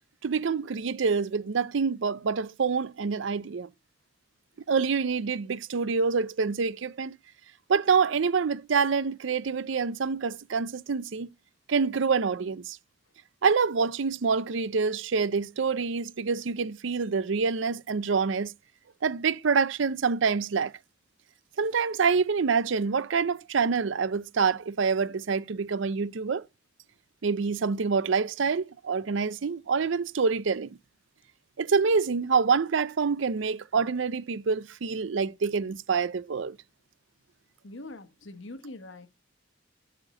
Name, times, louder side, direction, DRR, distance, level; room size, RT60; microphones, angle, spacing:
voice 1, 0.2-3.7 4.7-7.2 7.7-11.3 11.7-12.8 13.4-18.5 19.0-20.7 21.6-26.4 27.2-30.8 31.6-36.6, right 5 dB, 70° right, 0.5 m, -26 dB
voice 2, 37.6-39.1, left 2 dB, 65° left, 1.3 m, -43 dB
12.5 x 4.4 x 6.3 m
head